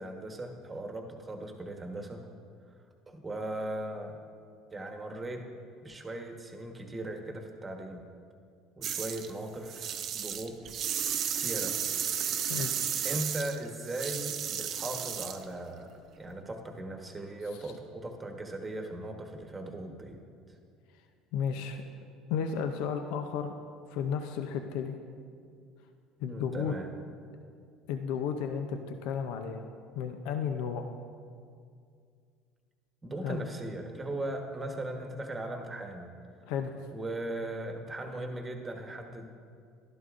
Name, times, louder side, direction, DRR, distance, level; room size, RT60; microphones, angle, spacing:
voice 1, 0.0-2.3 3.1-4.2 4.7-5.4 5.8-8.1 8.8-10.6 11.3-11.8 13.0-15.9 16.2-20.2 26.3-26.9 33.0-36.1 36.9-39.3, right 1 dB, 20° right, 3 dB, 1.2 m, -38 dB
sound 1, 8.8-9.3 9.6-15.4, right 9 dB, 50° right, 0.6 m, -33 dB
voice 2, 12.5-12.8 17.6-17.7 21.3-21.8 22.3-23.5 23.9-24.9 26.2-26.7 27.9-29.7 29.9-30.9 33.2-33.4 36.5-36.7, left 7 dB, 75° left, 6 dB, 0.5 m, -33 dB
12.0 x 11.0 x 2.5 m, 2.3 s
supercardioid pair, 100°, 0 cm